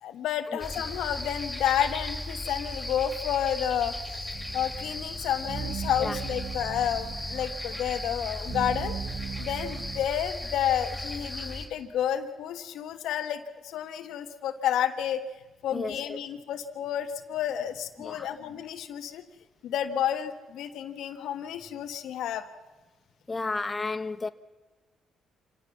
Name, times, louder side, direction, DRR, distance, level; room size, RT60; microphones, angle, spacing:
voice 1, 0.0-3.9 4.5-8.9 9.4-15.2 15.6-19.3 19.6-22.5, left 10 dB, 80° left, 1.5 m, -30 dB
sound 1, 0.6-11.7, left 1 dB, ahead, 4.4 m, -36 dB
sound 2, 4.3-10.1, right 7 dB, 65° right, 0.8 m, -38 dB
voice 2, 15.7-16.2 18.0-18.3 23.3-24.3, left 3 dB, 25° left, 1.2 m, -32 dB
26.5 x 18.5 x 7.2 m
cardioid pair, 90°, 0 cm